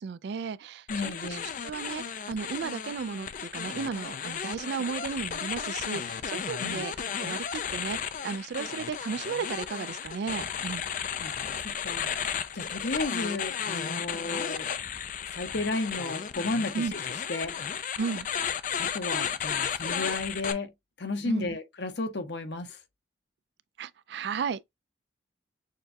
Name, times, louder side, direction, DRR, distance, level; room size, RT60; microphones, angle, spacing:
voice 1, 0.0-6.9 7.2-10.8 16.7-16.9 18.0-18.3 21.2-21.6 23.8-24.6, right 5 dB, 60° right, 0.3 m, -34 dB
voice 2, 0.9-1.5 6.6-6.9 11.2-12.1 12.5-14.7 15.3-17.0 17.3-17.5 18.8-20.7 21.0-22.8, left 2 dB, 60° left, 0.8 m, -33 dB
sound 1, 0.9-20.5, left 8 dB, 40° left, 0.4 m, -34 dB
6.5 x 2.3 x 2.6 m
head